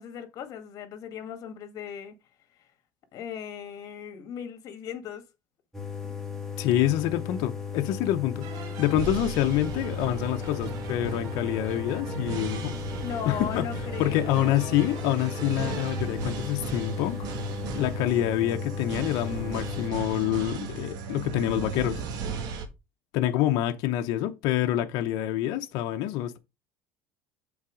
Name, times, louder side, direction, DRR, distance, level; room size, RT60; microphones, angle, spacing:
voice 1, 0.0-2.1 3.1-5.2 13.0-14.8, left 8 dB, 50° left, 1.9 m, -38 dB
sound 1, 5.7-19.9, left 6 dB, 5° left, 1.7 m, -36 dB
voice 2, 6.6-12.8 13.3-13.7 14.0-17.2 17.7-22.0 23.1-26.4, left 13 dB, 70° left, 0.8 m, -27 dB
sound 2, 8.4-22.7, right 5 dB, 60° right, 1.5 m, -36 dB
7.2 x 4.1 x 5.0 m
cardioid pair, 125°, 7 cm